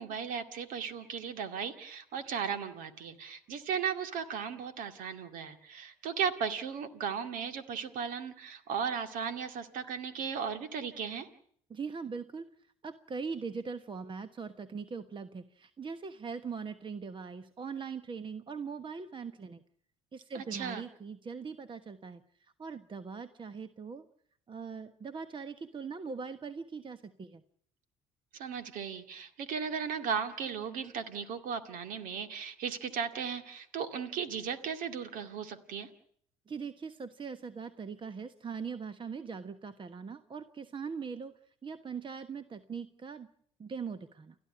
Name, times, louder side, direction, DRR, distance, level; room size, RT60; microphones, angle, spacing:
voice 1, 0.0-11.3 20.3-20.8 28.3-35.9, right 7 dB, 70° right, 9 dB, 2.2 m, -36 dB
voice 2, 11.7-12.4 12.8-19.6 20.1-22.2 22.6-24.1 24.5-27.4 36.5-41.3 41.6-43.3 43.6-44.4, right 5 dB, 35° right, 11 dB, 1.3 m, -41 dB
29.5 x 12.0 x 9.9 m, 0.64 s
hypercardioid pair, 65°, 15 cm